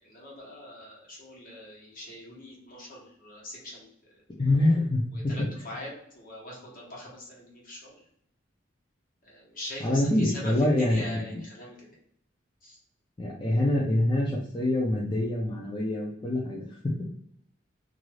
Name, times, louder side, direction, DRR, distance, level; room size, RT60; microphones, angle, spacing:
voice 1, 0.0-3.9 5.3-8.0 9.2-10.5 10.8-11.8 12.6-12.8, left 1 dB, 45° left, -4 dB, 1.1 m, -42 dB
voice 2, 4.4-5.6 9.8-11.4 13.2-16.9, left 1 dB, 25° left, -5 dB, 0.4 m, -26 dB
2.5 x 2.4 x 3.1 m, 0.71 s
head